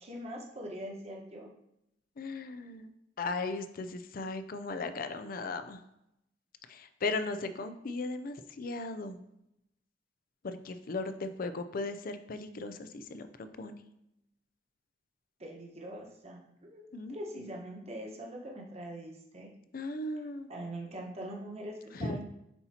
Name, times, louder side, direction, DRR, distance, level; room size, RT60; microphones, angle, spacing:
voice 1, 0.0-1.5 15.4-19.5 20.5-22.3, right 1 dB, 35° right, -1 dB, 1.1 m, -43 dB
voice 2, 2.2-2.9 3.2-5.8 6.7-9.2 10.4-13.8 16.9-17.5 19.7-20.5 21.9-22.2, left 3 dB, 50° left, 10 dB, 0.4 m, -37 dB
7.8 x 4.3 x 2.8 m, 0.82 s
head